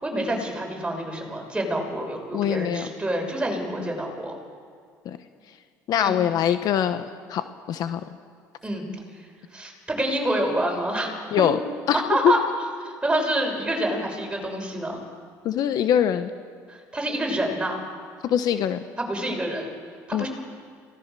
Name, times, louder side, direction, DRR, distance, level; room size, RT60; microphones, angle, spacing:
voice 1, 0.0-4.3 6.0-6.2 8.6-8.9 9.2-11.4 11.9-12.4 12.8-15.0 16.7-17.8 19.0-19.7 20.1-20.3, right 1 dB, 15° right, 1 dB, 6.6 m, -27 dB
voice 2, 2.3-2.9 5.0-5.2 5.9-7.0 7.3-8.0 11.3-11.6 11.9-12.0 12.2-12.3 15.4-16.3 18.2-18.8 20.1-20.3, left 10 dB, 60° left, 10 dB, 1.1 m, -23 dB
26.0 x 18.5 x 6.9 m, 2.2 s
supercardioid pair, 85°, 8 cm